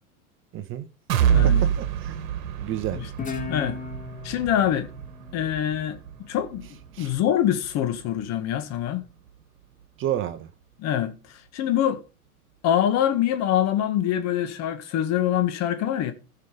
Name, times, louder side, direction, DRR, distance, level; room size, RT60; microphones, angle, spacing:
voice 1, 0.5-0.9 1.4-2.2 2.6-3.0 6.9-7.1 10.0-10.5, right 12 dB, 25° right, 0.9 m, -30 dB
sound 1, 1.1-8.9 9.3-9.4 9.8-9.9, right 9 dB, 60° right, 1.8 m, -28 dB
voice 2, 1.3-1.7 2.9-3.8 4.2-4.9 5.3-6.0 6.3-6.7 7.0-9.0 10.8-11.1 11.5-12.0 12.6-16.1, left 10 dB, 35° left, 1.9 m, -24 dB
Guitar, 3.2-6.4, left 6 dB, 15° left, 1.7 m, -37 dB
15.0 x 5.7 x 5.1 m
hypercardioid pair, 105°, 45 cm